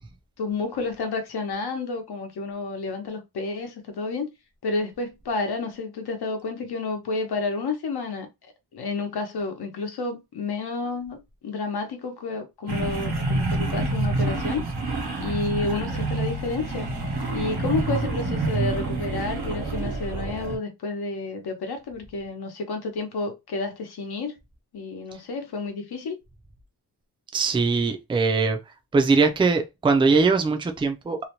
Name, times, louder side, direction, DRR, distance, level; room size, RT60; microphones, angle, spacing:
voice 1, 0.4-4.3 4.6-8.3 8.7-14.7 15.2-16.9 17.3-24.4 24.7-26.2, left 3 dB, 75° left, 0.9 m, -30 dB
sound 1, 12.7-20.6, right 2 dB, 80° right, 1.0 m, -27 dB
voice 2, 27.3-28.6 28.9-31.3, right 4 dB, 15° right, 0.4 m, -21 dB
2.8 x 2.1 x 2.9 m
wide cardioid pair, 145°, 39 cm